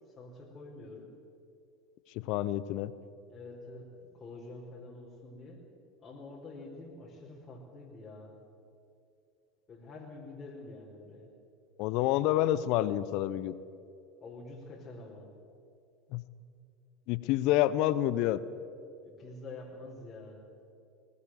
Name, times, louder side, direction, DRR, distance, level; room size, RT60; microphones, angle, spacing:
voice 1, 0.2-1.1 3.3-5.7 6.0-8.4 9.7-11.3 14.2-15.3 19.0-20.4, left 2 dB, 35° left, -3 dB, 4.9 m, -47 dB
voice 2, 2.1-2.9 11.8-13.5 16.1-16.2 17.1-18.4, left 14 dB, 60° left, 16 dB, 1.0 m, -28 dB
20.5 x 19.5 x 7.8 m, 2.5 s
hypercardioid pair, 80°, 0 cm